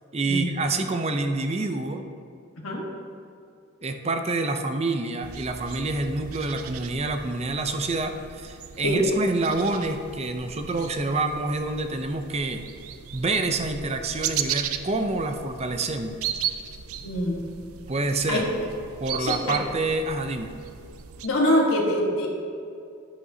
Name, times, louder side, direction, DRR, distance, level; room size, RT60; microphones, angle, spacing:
voice 1, 0.1-2.0 3.8-12.6 13.1-16.2 17.9-18.5 19.0-20.5, right 2 dB, 30° right, 6 dB, 0.5 m, -27 dB
sound 1, 5.2-21.3, right 9 dB, 90° right, 0.5 m, -36 dB
voice 2, 17.0-17.4 18.3-18.7 19.2-19.4 21.2-22.3, equal, 70° left, -2 dB, 1.5 m, -24 dB
10.5 x 9.6 x 2.8 m, 2.4 s
head